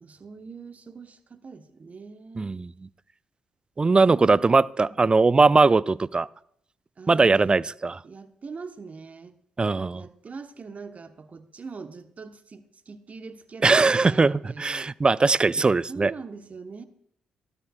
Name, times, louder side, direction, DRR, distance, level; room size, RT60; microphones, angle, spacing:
voice 1, 0.0-2.6 3.8-5.0 7.0-7.6 8.0-9.4 9.9-14.9 15.9-16.8, right 4 dB, 40° right, 1.0 m, -42 dB
voice 2, 2.4-2.7 3.8-6.3 7.1-8.0 9.6-10.0 13.6-16.1, right 3 dB, 25° right, 0.3 m, -20 dB
16.0 x 12.5 x 2.3 m
hypercardioid pair, 40°, 4 cm